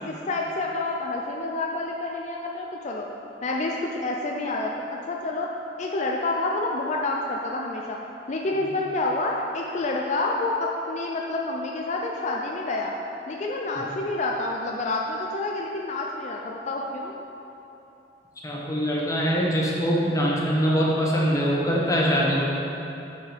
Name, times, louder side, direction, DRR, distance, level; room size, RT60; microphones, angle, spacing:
voice 1, 0.0-3.1 3.4-4.7 5.1-5.5 5.8-8.0 8.3-12.9 13.3-17.2, left 2 dB, 40° left, -1 dB, 0.5 m, -28 dB
voice 2, 18.4-22.4, equal, 20° left, -4 dB, 1.1 m, -23 dB
6.4 x 5.8 x 4.7 m, 2.9 s
head